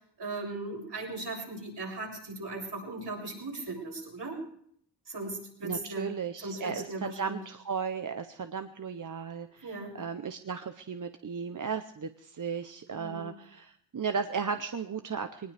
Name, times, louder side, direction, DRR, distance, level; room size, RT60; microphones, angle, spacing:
voice 1, 0.2-4.4 5.1-7.4 9.6-10.0 12.9-13.3, right 2 dB, 70° right, -2 dB, 7.4 m, -38 dB
voice 2, 5.6-15.5, right 6 dB, 45° right, 8 dB, 0.8 m, -35 dB
21.5 x 19.5 x 3.4 m, 0.65 s
wide cardioid pair, 115°, 43 cm